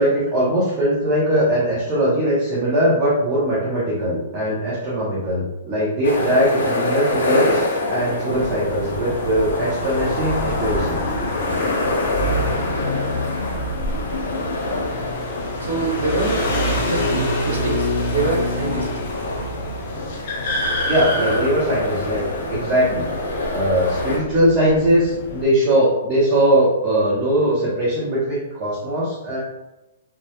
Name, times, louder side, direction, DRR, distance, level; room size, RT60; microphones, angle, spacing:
voice 1, 0.0-11.0 20.9-22.2 22.5-23.1 23.5-29.4, right 1 dB, 20° right, -8 dB, 0.5 m, -20 dB
sound 1, 6.0-24.2, left 2 dB, 90° left, 0.6 m, -26 dB
sound 2, 8.3-25.4, left 1 dB, 40° left, 0.5 m, -27 dB
voice 2, 15.6-16.5 16.8-18.9, right 3 dB, 65° right, 0 dB, 0.6 m, -25 dB
2.2 x 2.0 x 2.7 m, 0.96 s
hypercardioid pair, 180°, 0 cm